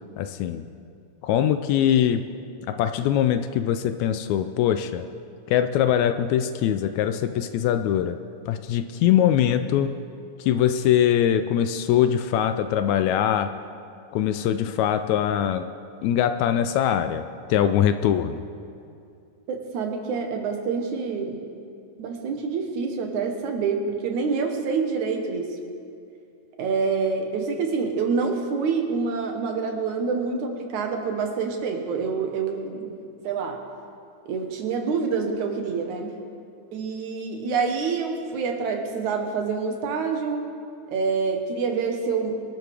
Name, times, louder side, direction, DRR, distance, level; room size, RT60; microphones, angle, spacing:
voice 1, 0.2-0.7 1.2-2.3 2.6-5.1 5.5-8.2 8.5-10.0 10.4-13.6 14.1-15.7 16.0-18.4, left 10 dB, 80° left, 10 dB, 1.8 m, -22 dB
voice 2, 19.5-21.4 22.0-25.6 26.6-33.0 33.2-33.6 34.3-36.2 36.7-40.5 40.9-42.4, right 5 dB, 75° right, 3 dB, 2.6 m, -27 dB
23.0 x 12.0 x 3.4 m, 2.5 s
omnidirectional pair, 3.5 m